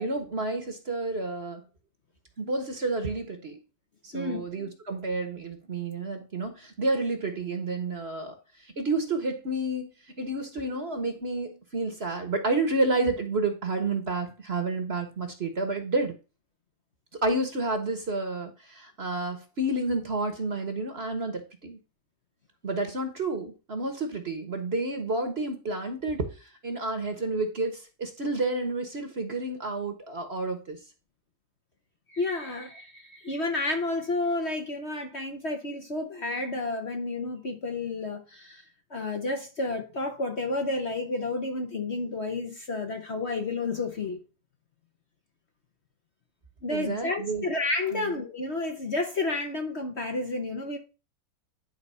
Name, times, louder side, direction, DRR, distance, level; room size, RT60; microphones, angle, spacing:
voice 1, 0.0-1.6 2.4-3.6 4.0-8.3 8.8-9.9 10.2-16.1 17.2-21.8 22.6-26.3 26.6-30.8 46.7-47.4 47.9-48.1, right 2 dB, 40° right, 1.4 m, -30 dB
voice 2, 32.1-38.6 38.9-44.2 46.6-50.8, left 2 dB, 45° left, 1.2 m, -31 dB
10.5 x 4.0 x 5.6 m
omnidirectional pair, 1.9 m